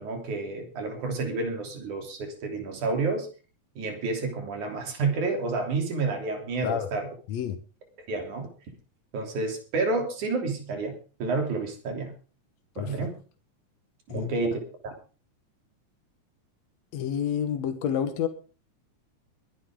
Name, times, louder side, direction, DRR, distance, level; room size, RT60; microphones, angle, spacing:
voice 1, 0.0-3.3 3.8-7.1 8.1-8.5 9.1-10.9 11.2-12.1 12.8-13.2 14.1-14.9, right 3 dB, 80° right, 4.7 m, -30 dB
voice 2, 12.8-13.1 14.1-14.3 16.9-18.3, left 9 dB, 65° left, 2.3 m, -29 dB
22.5 x 9.8 x 3.7 m
omnidirectional pair, 3.4 m